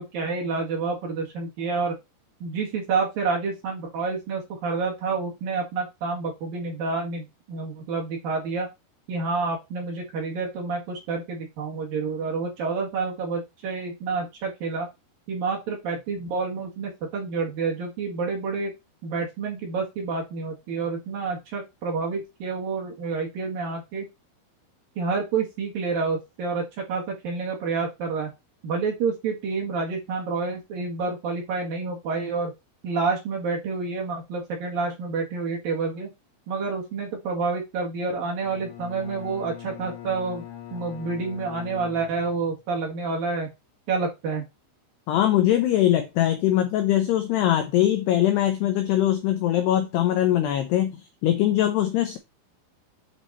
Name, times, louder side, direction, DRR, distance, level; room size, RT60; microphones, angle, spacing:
voice 1, 0.0-1.9 2.4-8.7 9.1-14.9 15.3-18.7 19.0-24.1 25.0-28.3 28.6-32.5 32.8-36.1 36.5-43.5 43.9-44.4, right 4 dB, 55° right, 2.8 m, -28 dB
Bowed string instrument, 38.4-42.6, left 11 dB, 60° left, 2.0 m, -41 dB
voice 2, 45.1-52.2, left 12 dB, 90° left, 2.3 m, -22 dB
9.0 x 5.1 x 4.1 m
omnidirectional pair, 5.9 m